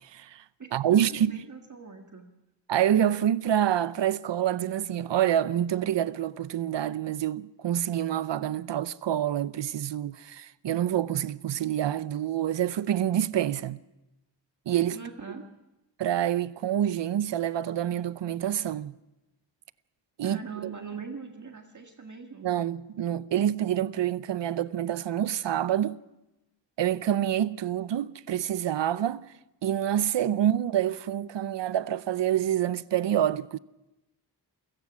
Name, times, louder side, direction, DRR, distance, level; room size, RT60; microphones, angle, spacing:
voice 1, 0.0-0.4 0.7-1.4 2.7-13.8 14.7-15.0 16.0-18.9 20.2-20.7 22.4-26.0 26.8-29.2 29.6-33.6, right 11 dB, 75° right, 0.7 m, -27 dB
voice 2, 1.1-2.3 14.9-15.5 20.2-22.5, right 5 dB, 40° right, 1.7 m, -41 dB
28.0 x 16.5 x 6.1 m
wide cardioid pair, 80°, 43 cm